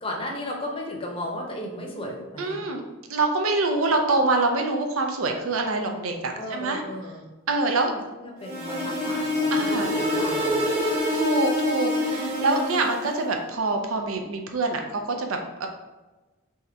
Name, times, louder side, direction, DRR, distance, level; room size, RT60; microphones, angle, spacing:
voice 1, 0.0-2.6 6.3-7.2 7.8-10.5, left 1 dB, 25° left, 0 dB, 0.7 m, -35 dB
voice 2, 2.4-2.8 3.1-6.8 7.5-7.9 9.5-9.9 11.1-15.7, right 3 dB, 80° right, 4 dB, 0.6 m, -25 dB
sound 1, 8.4-13.2, left 1 dB, 30° right, 1.2 m, -26 dB
3.6 x 2.8 x 4.4 m, 1.2 s
head